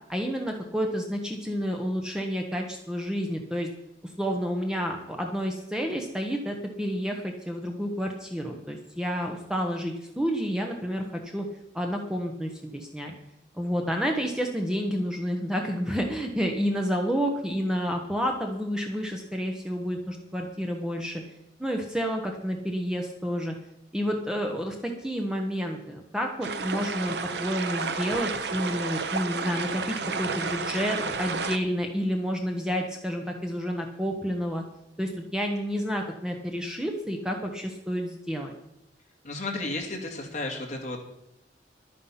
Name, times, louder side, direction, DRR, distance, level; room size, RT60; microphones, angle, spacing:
voice 1, 0.1-3.7 4.0-11.5 11.7-13.1 13.5-21.2 21.6-23.5 23.9-34.6 35.0-38.5, equal, 5° right, 2 dB, 1.0 m, -30 dB
sound 1, 26.4-31.6, right 4 dB, 60° right, 0.8 m, -31 dB
voice 2, 39.2-41.0, left 2 dB, 40° left, 0 dB, 2.3 m, -33 dB
11.5 x 9.6 x 5.8 m, 0.83 s
head